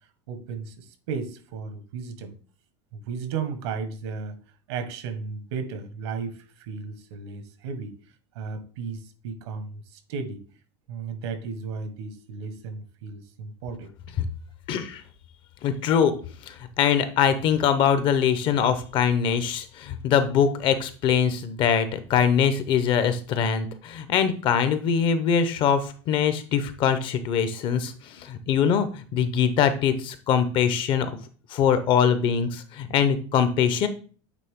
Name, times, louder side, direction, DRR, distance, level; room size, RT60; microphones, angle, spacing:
voice 1, 0.3-2.4 2.9-4.4 4.7-7.9 8.3-10.4 10.9-13.9, right 5 dB, 80° right, 9 dB, 1.4 m, -34 dB
voice 2, 14.7-15.0 15.6-16.1 16.5-31.1 31.5-33.9, left 7 dB, 35° left, 11 dB, 0.7 m, -23 dB
8.3 x 3.5 x 3.6 m, 0.39 s
supercardioid pair, 160°, 14 cm